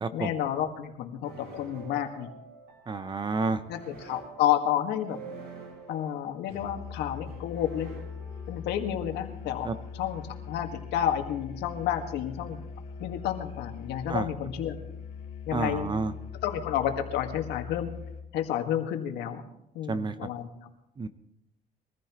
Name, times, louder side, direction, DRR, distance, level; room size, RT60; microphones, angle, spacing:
voice 1, 0.1-2.3 3.7-5.2 5.9-7.9 8.5-12.6 13.0-14.8 15.5-15.9 16.4-17.9 18.3-19.4 19.8-20.5, left 10 dB, 85° left, 5 dB, 1.8 m, -30 dB
sound 1, 1.2-8.9, right 4 dB, 80° right, 6.3 m, -48 dB
voice 2, 2.9-3.6 9.6-9.7 14.1-14.3 15.5-16.1 19.9-20.1 21.0-21.1, right 4 dB, 25° right, 12 dB, 0.8 m, -29 dB
Musical instrument, 6.5-18.3, left 6 dB, 70° left, 2.7 m, -41 dB
22.5 x 14.5 x 3.1 m, 0.83 s
cardioid pair, 110°, 17 cm